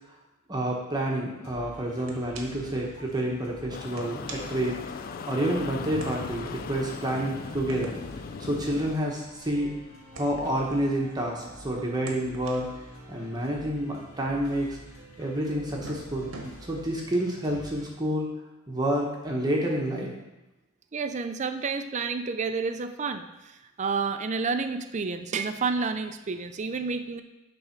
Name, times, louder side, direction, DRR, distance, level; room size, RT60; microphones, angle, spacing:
voice 1, 0.5-4.7 5.3-8.0 8.4-9.7 10.1-12.7 13.1-14.8 15.2-16.3 16.6-18.3 18.7-20.1, right 1 dB, 20° right, -2 dB, 1.0 m, -29 dB
sound 1, 1.4-17.9, right 1 dB, 90° left, 1.8 m, -48 dB
sound 2, 2.1-2.7 3.1-3.2 3.8-5.4 6.0-11.5 11.9-15.0 15.5-16.5, right 2 dB, 90° right, 1.1 m, -46 dB
sound 3, 3.7-9.0, left 5 dB, 45° left, 0.3 m, -38 dB
voice 2, 20.9-23.5 23.8-27.2, right 4 dB, 35° right, 9 dB, 0.4 m, -30 dB
8.7 x 3.5 x 5.8 m, 1.0 s
head